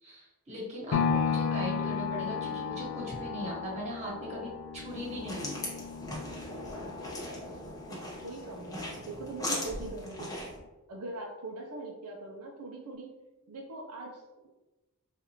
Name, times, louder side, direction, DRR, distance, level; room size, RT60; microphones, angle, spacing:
voice 1, 0.0-5.6, equal, 30° right, -5 dB, 1.3 m, -39 dB
sound 1, 0.9-9.0 9.5-9.6, left 6 dB, 75° left, 0.4 m, -34 dB
sound 2, 4.9-10.6, left 1 dB, 15° left, 0.8 m, -39 dB
voice 2, 7.9-10.5 10.9-13.1 13.5-14.5, right 2 dB, 85° right, 0 dB, 0.6 m, -41 dB
4.1 x 2.5 x 2.9 m, 1.1 s
head